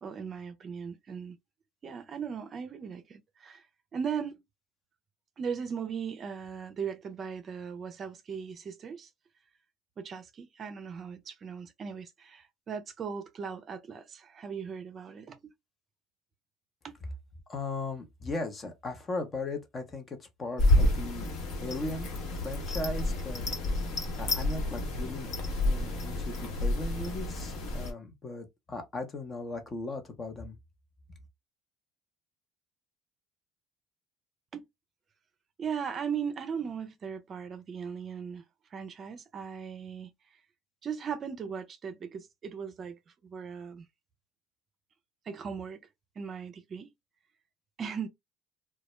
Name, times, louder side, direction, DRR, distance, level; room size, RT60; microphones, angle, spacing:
voice 1, 0.0-1.4 1.8-3.6 3.9-4.4 5.4-9.1 10.0-15.4 16.8-16.9 34.5-34.6 35.6-38.4 38.7-40.1 40.8-43.9 45.3-45.8 46.2-46.9 47.8-48.1, right 6 dB, 45° right, 0.5 m, -38 dB
voice 2, 17.5-21.3 21.6-22.1 22.4-23.5 24.2-25.3 25.6-30.6, left 2 dB, 35° left, 0.8 m, -37 dB
sound 1, 20.6-27.9, left 1 dB, 60° left, 1.1 m, -29 dB
2.3 x 2.0 x 3.0 m
supercardioid pair, 80°, 0 cm